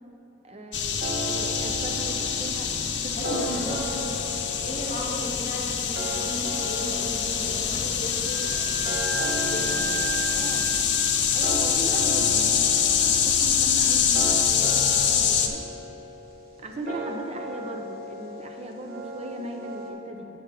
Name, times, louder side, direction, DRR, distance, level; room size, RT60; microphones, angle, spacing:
voice 1, 0.4-2.7 3.0-4.1 4.6-4.7 10.3-10.7 11.3-15.6 16.6-20.3, right 1 dB, 35° right, 3 dB, 0.6 m, -38 dB
sound 1, 0.7-15.5, left 7 dB, 85° left, 0.6 m, -25 dB
sound 2, 1.0-19.9, right 2 dB, 60° right, 1.2 m, -36 dB
voice 2, 3.2-4.2 4.6-8.9 9.3-9.9 16.9-17.0, left 1 dB, 50° left, -2 dB, 1.4 m, -36 dB
Wind instrument woodwind instrument, 8.1-15.5, right 5 dB, 90° right, 0.6 m, -38 dB
7.4 x 6.8 x 5.2 m, 2.9 s
head